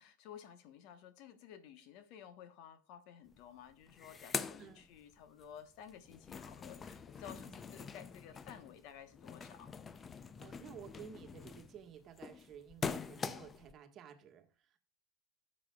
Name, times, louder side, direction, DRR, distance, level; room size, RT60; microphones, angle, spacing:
voice 1, 0.0-9.7, left 9 dB, 55° left, 1.2 m, -54 dB
sound 1, 3.3-3.4 3.7-5.5 5.8-13.7, left 5 dB, 25° left, 0.5 m, -44 dB
voice 2, 10.1-14.8, right 8 dB, 35° right, 1.6 m, -54 dB
12.5 x 7.4 x 2.4 m
hypercardioid pair, 105°, 0 cm